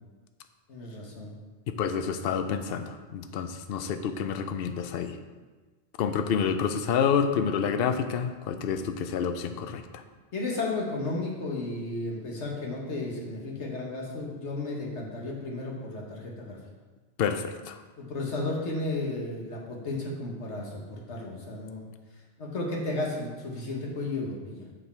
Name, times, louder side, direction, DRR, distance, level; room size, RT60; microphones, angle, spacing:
voice 1, 0.7-1.3 10.3-16.6 18.0-21.8 22.4-24.7, left 2 dB, 80° left, -2 dB, 1.7 m, -33 dB
voice 2, 1.7-5.2 6.0-10.0 17.2-17.8, left 7 dB, 65° left, 8 dB, 0.7 m, -28 dB
6.8 x 6.5 x 4.4 m, 1.3 s
omnidirectional pair, 1.2 m